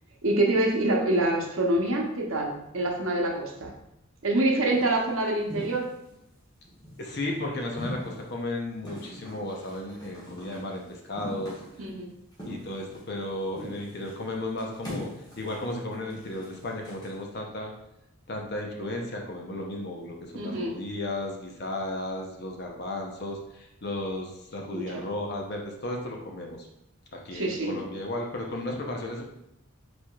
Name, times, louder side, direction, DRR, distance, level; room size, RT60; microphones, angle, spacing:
voice 1, 0.2-3.7 4.2-5.9 11.8-12.1 20.3-20.8 24.7-25.0 27.3-27.8, right 1 dB, 65° right, 0 dB, 0.8 m, -26 dB
sound 1, 4.7-5.0 5.5-6.2 6.6-7.3 7.8-8.4 8.8-10.8 11.2-11.9 12.3-13.3 13.5-14.2 14.6-17.1, left 1 dB, 20° left, 1.2 m, -41 dB
voice 2, 7.0-11.6 12.4-15.1 15.4-17.7 18.3-26.7 27.1-29.2, left 1 dB, 50° left, 1 dB, 0.7 m, -34 dB
4.7 x 4.3 x 2.3 m, 0.83 s
head